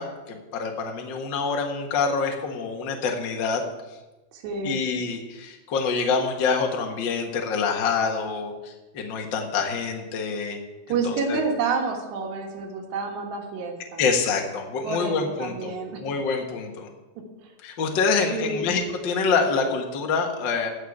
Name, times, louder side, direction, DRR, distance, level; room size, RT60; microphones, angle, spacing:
voice 1, 0.0-3.6 4.6-10.6 11.0-11.4 14.0-15.7 16.0-16.9 17.6-20.7, left 5 dB, 65° left, 2 dB, 1.1 m, -26 dB
voice 2, 4.3-4.8 10.9-14.0 14.8-15.2 15.4-16.0 18.3-18.7, right 4 dB, 90° right, 2 dB, 3.8 m, -28 dB
15.5 x 5.2 x 8.7 m, 1.1 s
omnidirectional pair, 4.7 m